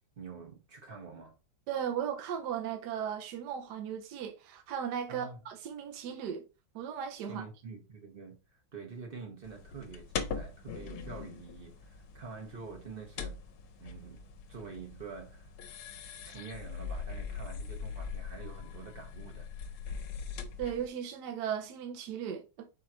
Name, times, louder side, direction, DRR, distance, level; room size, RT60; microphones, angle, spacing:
voice 1, 0.2-1.4 5.1-5.4 7.3-13.4 13.8-14.2 14.5-15.5 16.2-19.5, right 5 dB, 45° right, 0.7 m, -46 dB
voice 2, 1.7-6.4 6.7-7.4 20.6-22.7, right 8 dB, 70° right, 1.0 m, -36 dB
sound 1, 9.4-20.9, left 6 dB, 85° left, 1.6 m, -42 dB
5.2 x 2.4 x 4.2 m
omnidirectional pair, 2.3 m